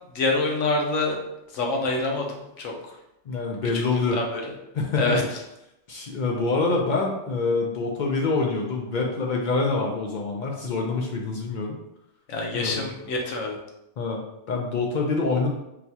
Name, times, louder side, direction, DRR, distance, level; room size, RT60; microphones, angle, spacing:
voice 1, 0.1-1.2 1.5-2.7 3.9-4.5 4.9-5.4 12.3-13.6, left 2 dB, 90° left, 1 dB, 1.0 m, -26 dB
voice 2, 3.3-4.2 4.7-5.2 5.9-11.8 12.5-12.9 14.0-14.2 14.5-15.5, left 3 dB, 60° left, 0 dB, 0.5 m, -26 dB
4.1 x 2.3 x 2.7 m, 0.85 s
omnidirectional pair, 1.2 m